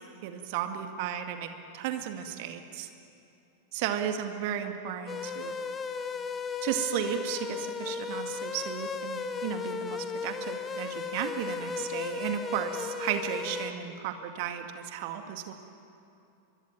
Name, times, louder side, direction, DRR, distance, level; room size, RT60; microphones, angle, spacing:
voice 1, 0.2-1.5 1.7-2.9 3.7-5.5 6.6-15.5, right 9 dB, 50° right, 6 dB, 2.1 m, -34 dB
sound 1, 5.1-13.7, left 5 dB, 20° left, 1.5 m, -35 dB
24.5 x 23.0 x 9.1 m, 2.7 s
figure-of-eight pair, 90°, 0 cm